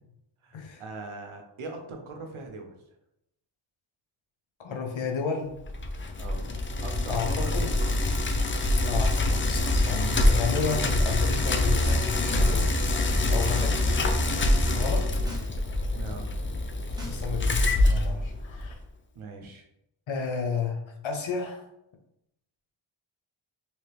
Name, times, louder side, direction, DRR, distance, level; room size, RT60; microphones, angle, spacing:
voice 1, 0.4-2.8 6.2-6.5 6.8-8.0 13.3-13.9 15.9-16.3 19.1-19.6, right 3 dB, 75° right, 3 dB, 0.8 m, -41 dB
voice 2, 4.6-5.6 7.1-7.7 8.8-12.7 13.3-14.0 14.7-15.1 17.0-18.7 20.1-21.7, left 5 dB, 65° left, 3 dB, 0.9 m, -32 dB
Bicycle, 5.6-18.8, left 2 dB, 25° left, 0.4 m, -25 dB
sound 1, 11.7-12.1 12.3-13.8 14.1-14.4 14.9-15.5 15.8-17.8, equal, 10° right, 1.1 m, -44 dB
3.2 x 2.8 x 3.3 m, 0.83 s
cardioid pair, 50°, 49 cm